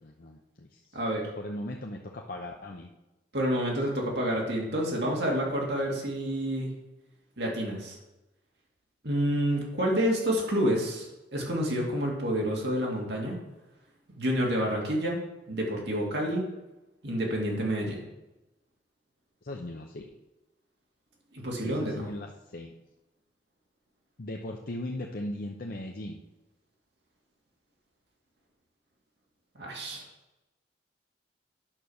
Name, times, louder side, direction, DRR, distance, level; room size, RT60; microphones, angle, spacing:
voice 1, 0.0-1.0 1.4-2.9 19.4-20.1 21.6-22.7 24.2-26.2, left 1 dB, 55° left, 1 dB, 0.8 m, -38 dB
voice 2, 0.9-1.3 3.3-6.7 7.4-8.0 9.0-13.4 14.2-15.2 15.5-16.4 17.0-18.0 21.3-22.1 29.6-30.0, equal, 65° right, -1 dB, 2.4 m, -29 dB
9.0 x 5.7 x 6.5 m, 0.99 s
head